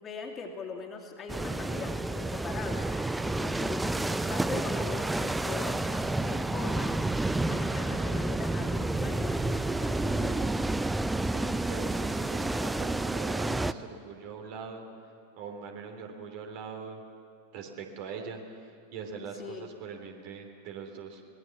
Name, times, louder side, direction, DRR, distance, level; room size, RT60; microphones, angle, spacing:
voice 1, 0.0-2.9 3.2-10.6 19.2-19.7, left 5 dB, 25° left, 1 dB, 2.9 m, -41 dB
sound 1, 1.3-13.7, right 2 dB, 5° right, 0.6 m, -30 dB
voice 2, 11.3-14.9 15.4-17.0 17.5-21.2, right 5 dB, 45° right, 3 dB, 3.1 m, -42 dB
24.5 x 20.0 x 7.2 m, 2.6 s
figure-of-eight pair, 90°, 0 cm